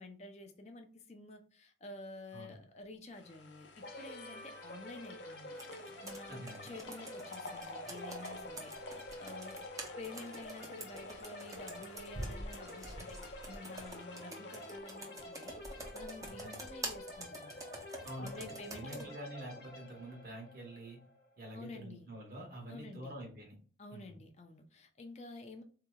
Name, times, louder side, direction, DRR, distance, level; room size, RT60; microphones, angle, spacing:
voice 1, 0.0-5.6 6.0-9.6 10.0-17.6 18.2-19.1 21.5-22.1 22.7-23.2 23.8-25.6, left 2 dB, 35° left, 5 dB, 0.4 m, -50 dB
sound 1, 3.1-16.4 16.7-16.8, left 2 dB, 80° left, 0.7 m, -52 dB
sound 2, 3.8-21.4, left 1 dB, 55° left, 1.0 m, -49 dB
Computer keyboard, 5.6-19.1, right 1 dB, 20° right, 0.6 m, -47 dB
voice 2, 6.3-6.7 16.3-16.6 18.0-21.0 21.4-23.5 23.9-24.2, right 1 dB, 50° right, 1 dB, 1.2 m, -47 dB
3.9 x 2.8 x 2.2 m, 0.40 s
head